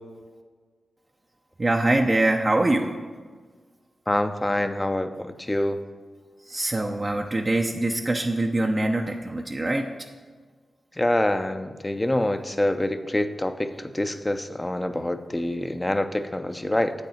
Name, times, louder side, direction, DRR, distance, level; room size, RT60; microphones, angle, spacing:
voice 1, 1.6-2.9 6.4-9.9, right 2 dB, 40° right, 2 dB, 0.6 m, -23 dB
voice 2, 4.1-5.8 11.0-16.9, left 1 dB, 20° left, 10 dB, 0.6 m, -26 dB
8.2 x 6.6 x 4.3 m, 1.5 s
cardioid pair, 45°, 0 cm